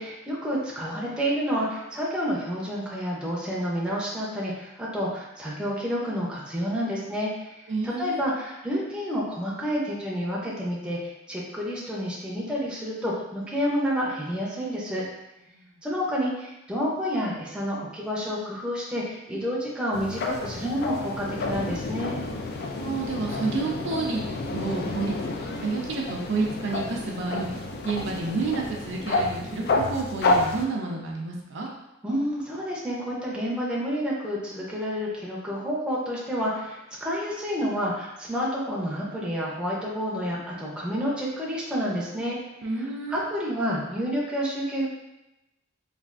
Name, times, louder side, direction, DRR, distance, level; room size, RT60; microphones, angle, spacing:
voice 1, 0.0-7.6 7.8-15.0 15.8-22.2 32.0-42.4 42.8-44.9, equal, 5° right, -6 dB, 0.6 m, -29 dB
voice 2, 7.7-8.2 15.5-15.7 22.8-24.3 24.5-25.2 25.6-27.5 27.8-31.7 42.6-43.2, right 3 dB, 65° right, 0 dB, 0.5 m, -30 dB
sound 1, 19.9-30.6, left 2 dB, 55° left, 0.3 m, -29 dB
3.3 x 2.3 x 2.4 m, 0.92 s
head